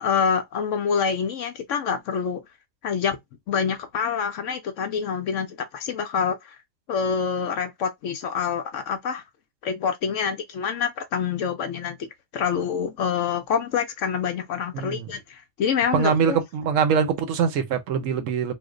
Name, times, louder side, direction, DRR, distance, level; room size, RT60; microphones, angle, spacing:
voice 1, 0.0-2.4 2.8-3.2 3.5-6.6 6.9-9.2 9.6-12.1 12.3-16.4, left 6 dB, 70° left, 0.8 m, -26 dB
voice 2, 14.7-15.1 15.9-18.5, right 6 dB, 65° right, 1.0 m, -23 dB
3.1 x 2.0 x 3.7 m
omnidirectional pair, 1.5 m